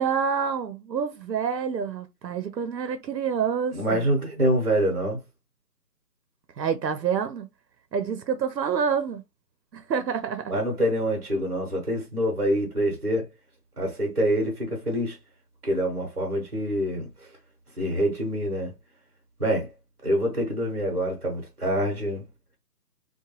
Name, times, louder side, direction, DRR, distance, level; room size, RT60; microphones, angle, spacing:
voice 1, 0.0-4.0 6.6-7.5 7.9-9.2 9.7-10.5, right 7 dB, 85° right, 0.7 m, -27 dB
voice 2, 3.7-5.2 10.5-13.3 13.8-15.2 15.6-17.1 17.8-18.7 19.4-19.7 20.0-22.2, equal, 40° right, 0.7 m, -25 dB
2.8 x 2.2 x 2.9 m
figure-of-eight pair, 180°, 50 cm